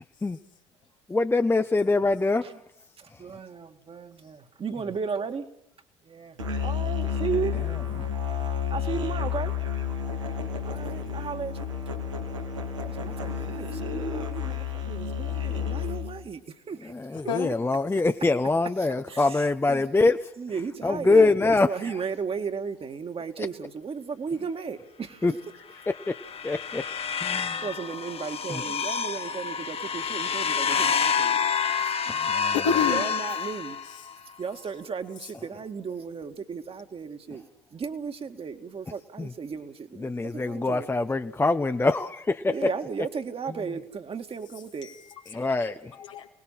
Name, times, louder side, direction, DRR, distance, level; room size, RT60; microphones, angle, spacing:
voice 1, 1.1-2.4 16.9-20.2 20.8-22.0 25.2-25.3 25.9-26.2 26.4-26.8 27.2-27.6 28.5-28.6 32.1-32.5 39.2-39.3 40.0-42.7 45.3-45.9, left 3 dB, 15° left, 8 dB, 0.9 m, -24 dB
voice 2, 3.0-5.5 6.1-7.7 8.7-9.5 10.2-10.3 10.6-11.7 12.8-16.4 16.7-16.9 19.1-19.8 20.4-25.4 27.6-31.4 32.9-33.8 34.4-37.4 37.7-40.1 40.3-40.9 42.5-44.9, right 5 dB, 35° right, 6 dB, 2.1 m, -35 dB
Musical instrument, 6.4-16.2, left 6 dB, 85° right, 2.5 m, -31 dB
sound 1, 25.8-34.1, left 6 dB, 40° left, 1.4 m, -28 dB
voice 3, 32.5-33.1 44.8-45.7 46.0-46.3, left 7 dB, 85° left, 2 dB, 2.4 m, -29 dB
29.0 x 19.5 x 5.8 m, 0.76 s
hypercardioid pair, 55°, 16 cm